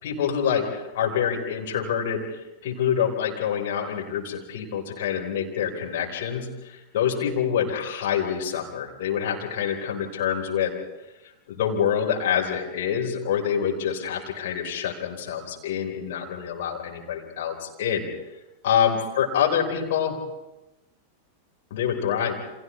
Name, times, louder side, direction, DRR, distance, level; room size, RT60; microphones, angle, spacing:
voice 1, 0.0-10.7 11.5-18.1 18.6-20.2 21.7-22.4, left 8 dB, 55° left, 0 dB, 4.3 m, -26 dB
29.5 x 26.5 x 3.3 m, 0.97 s
figure-of-eight pair, 90°, 0 cm